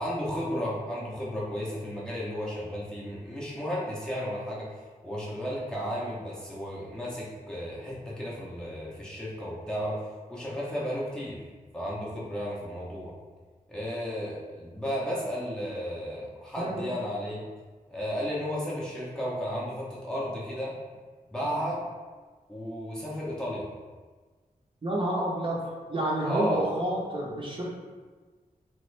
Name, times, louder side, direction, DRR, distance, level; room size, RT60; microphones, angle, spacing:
voice 1, 0.0-4.7 5.0-11.5 11.7-13.1 13.7-17.4 17.9-20.7 21.3-21.9 22.5-23.7 26.2-26.6, equal, 5° left, -6 dB, 0.6 m, -33 dB
voice 2, 24.8-25.6 25.9-27.7, right 1 dB, 35° right, -4 dB, 0.6 m, -29 dB
3.1 x 2.4 x 3.1 m, 1.4 s
wide cardioid pair, 105°, 16 cm